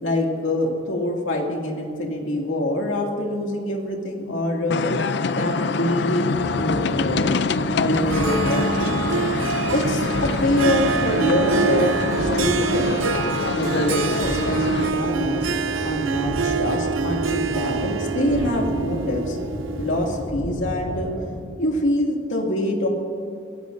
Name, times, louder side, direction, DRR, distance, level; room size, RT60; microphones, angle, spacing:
voice 1, 0.0-4.9 5.3-9.0 9.7-13.0 13.5-15.5 15.8-19.4 19.8-21.1 21.6-22.9, left 1 dB, 85° left, 0 dB, 2.4 m, -25 dB
sound 1, 4.7-14.9, left 4 dB, 60° left, 0.5 m, -25 dB
sound 2, 6.3-21.3, equal, 65° right, 4.3 m, -33 dB
Harp, 8.1-20.3, right 5 dB, 90° right, 0.6 m, -26 dB
23.0 x 16.5 x 2.7 m, 2.5 s
head